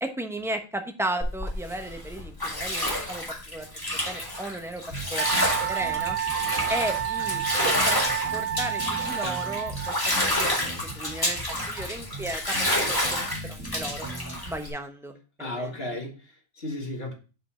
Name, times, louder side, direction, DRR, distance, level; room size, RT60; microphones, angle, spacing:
voice 1, 0.0-4.8 5.1-6.2 6.7-13.2 13.5-14.1 14.5-15.7, right 1 dB, ahead, 0.7 m, -35 dB
Bathtub (filling or washing), 1.2-14.7, left 1 dB, 15° left, 1.9 m, -29 dB
sound 1, 4.9-14.5, right 2 dB, 55° right, 2.2 m, -40 dB
Wind instrument woodwind instrument, 5.2-10.2, right 10 dB, 85° right, 0.3 m, -30 dB
voice 2, 15.4-17.1, left 1 dB, 50° left, 1.8 m, -34 dB
5.4 x 5.2 x 5.5 m
omnidirectional pair, 1.3 m